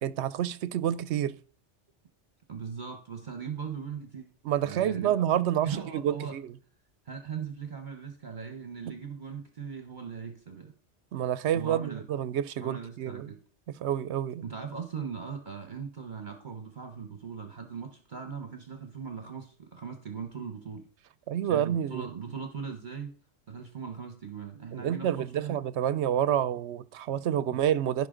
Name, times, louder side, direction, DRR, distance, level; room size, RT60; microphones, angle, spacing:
voice 1, 0.0-1.4 4.4-5.7 5.9-6.5 11.1-13.3 13.8-14.4 21.3-22.1 24.7-28.1, right 10 dB, 75° right, 0.9 m, -28 dB
voice 2, 2.5-4.3 4.6-5.2 5.6-6.4 7.1-10.7 11.5-12.0 12.6-13.4 14.4-20.8 21.5-23.1 23.5-25.5 27.5-27.6, right 6 dB, 45° right, 1.1 m, -39 dB
16.0 x 5.4 x 3.8 m
omnidirectional pair, 1.2 m